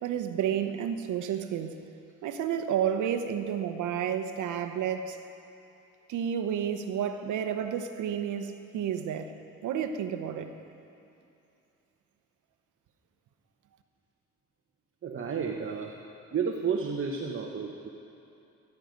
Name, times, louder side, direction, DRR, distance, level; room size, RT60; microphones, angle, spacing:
voice 1, 0.0-1.7 2.2-5.2 6.1-9.3 9.6-10.5, right 8 dB, 80° right, 7 dB, 1.0 m, -31 dB
voice 2, 15.0-16.0 16.3-17.9, right 6 dB, 45° right, 1 dB, 1.1 m, -31 dB
22.0 x 11.0 x 5.2 m, 2.8 s
cardioid pair, 90°, 30 cm